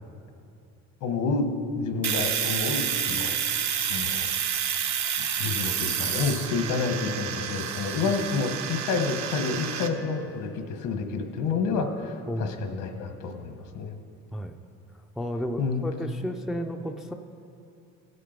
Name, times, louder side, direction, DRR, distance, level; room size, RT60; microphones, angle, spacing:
voice 1, 1.0-1.5 1.8-3.4 3.9-4.3 5.2-14.0 15.6-15.9, left 4 dB, 75° left, 5 dB, 1.3 m, -29 dB
Domestic sounds home sounds, 2.0-9.9, right 8 dB, 65° right, 0.8 m, -29 dB
voice 2, 12.3-12.7 14.3-14.6 15.2-17.1, equal, ahead, 4 dB, 0.4 m, -32 dB
16.0 x 6.7 x 5.1 m, 2.6 s
cardioid pair, 120°, 31 cm